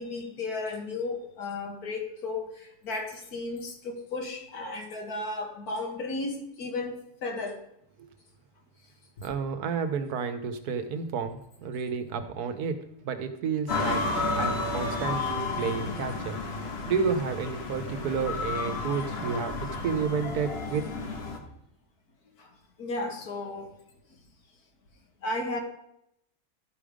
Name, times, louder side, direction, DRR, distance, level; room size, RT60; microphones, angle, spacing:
voice 1, 0.0-7.6 22.4-22.5 22.8-23.7 25.2-25.6, left 2 dB, 75° left, 2 dB, 2.0 m, -34 dB
voice 2, 9.2-12.8 13.0-14.0 14.4-16.3 16.9-20.9, right 6 dB, 90° right, 9 dB, 1.4 m, -31 dB
sound 1, 13.7-21.4, left 3 dB, 45° left, 1.2 m, -32 dB
12.0 x 5.2 x 5.0 m, 0.77 s
omnidirectional pair, 1.6 m